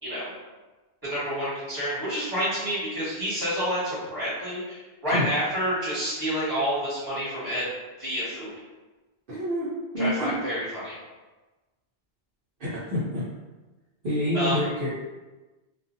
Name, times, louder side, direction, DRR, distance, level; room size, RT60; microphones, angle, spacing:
voice 1, 1.0-7.7 8.0-8.5 10.0-10.9 14.3-14.6, equal, 20° right, -10 dB, 1.4 m, -29 dB
voice 2, 9.3-10.4 12.6-13.2 14.0-14.9, left 1 dB, 60° right, -10 dB, 0.8 m, -27 dB
2.5 x 2.4 x 2.6 m, 1.2 s
omnidirectional pair, 1.1 m